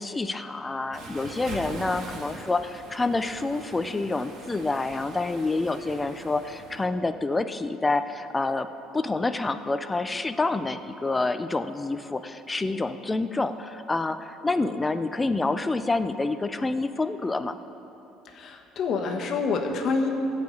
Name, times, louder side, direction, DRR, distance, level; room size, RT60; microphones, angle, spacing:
voice 1, 0.0-8.7 8.9-17.6, left 3 dB, 15° left, 10 dB, 0.4 m, -28 dB
Waves surf, 0.9-6.9, right 2 dB, 55° right, 2.1 m, -42 dB
voice 2, 18.2-20.1, left 4 dB, 55° left, 3 dB, 1.3 m, -27 dB
14.5 x 4.9 x 8.4 m, 2.9 s
cardioid pair, 110°, 0 cm